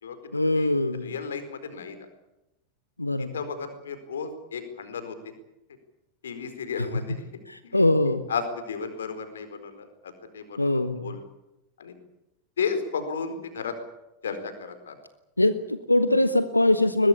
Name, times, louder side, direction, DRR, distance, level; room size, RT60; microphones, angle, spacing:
voice 1, 0.3-1.1 3.0-3.4 6.8-7.0 7.5-8.2 10.6-11.2 15.4-17.1, left 1 dB, 85° left, 12 dB, 1.2 m, -23 dB
voice 2, 1.0-2.0 3.2-5.3 6.2-7.8 8.3-11.2 11.8-11.9 12.6-13.8 14.2-15.0, left 6 dB, 65° left, 9 dB, 4.5 m, -34 dB
22.0 x 21.0 x 8.6 m, 0.90 s
figure-of-eight pair, 90°, 0 cm